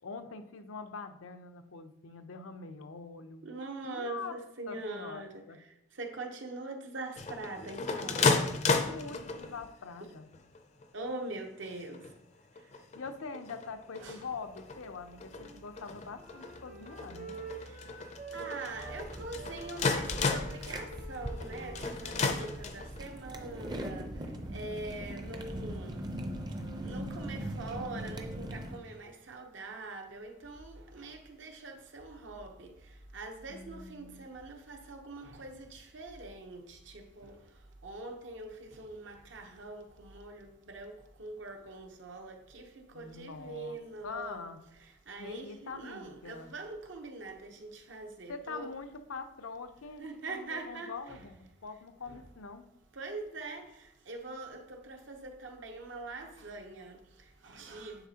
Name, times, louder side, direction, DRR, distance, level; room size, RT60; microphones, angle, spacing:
voice 1, 0.0-3.5 3.8-4.4 4.7-5.6 8.8-10.3 12.9-17.4 33.5-34.3 42.9-44.6 45.2-46.5 48.3-52.7, left 4 dB, 90° left, 0.6 m, -44 dB
voice 2, 3.4-5.4 5.9-8.3 10.9-12.1 14.0-14.2 17.6-17.9 18.3-26.1 26.8-37.5 37.8-44.4 45.1-48.7 50.0-50.9 53.0-58.1, right 2 dB, 65° right, 0.9 m, -43 dB
sound 1, 7.2-9.7 10.3-10.8 11.3-11.4 11.6-12.2 12.6-23.1, left 4 dB, 35° left, 0.5 m, -34 dB
Wind instrument woodwind instrument, 15.2-19.0 19.3-23.6, right 4 dB, 45° right, 1.1 m, -48 dB
sound 2, 18.7-28.8, right 1 dB, 20° right, 0.5 m, -41 dB
9.7 x 4.1 x 2.8 m
head